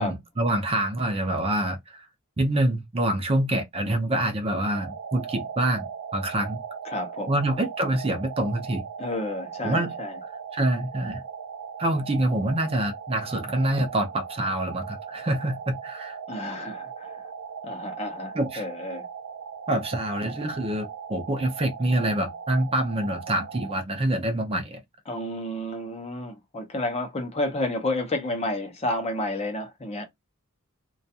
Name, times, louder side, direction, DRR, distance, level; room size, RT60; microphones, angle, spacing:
voice 1, 0.0-2.1 2.4-5.9 6.1-6.6 7.3-8.8 9.6-10.0 10.5-11.2 11.8-16.2 18.3-18.6 19.7-24.8, right 1 dB, 25° right, 0.5 m, -26 dB
sound 1, 4.6-23.8, right 6 dB, 80° right, 0.4 m, -38 dB
voice 2, 6.8-7.4 9.0-10.2 16.3-17.3 17.6-19.1 25.1-30.0, left 1 dB, 30° left, 0.6 m, -31 dB
2.4 x 2.3 x 2.6 m
head